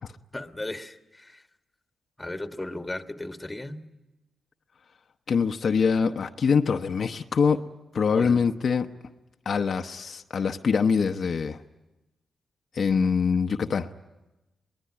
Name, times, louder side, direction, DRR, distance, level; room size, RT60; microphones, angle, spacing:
voice 1, 0.3-1.4 2.2-3.8 8.1-8.4, left 2 dB, 15° left, 7 dB, 1.5 m, -36 dB
voice 2, 5.3-7.6 7.9-8.9 9.5-11.6 12.7-13.9, left 5 dB, 60° left, 5 dB, 0.9 m, -24 dB
23.5 x 20.0 x 9.8 m, 1.0 s
cardioid pair, 70°, 0 cm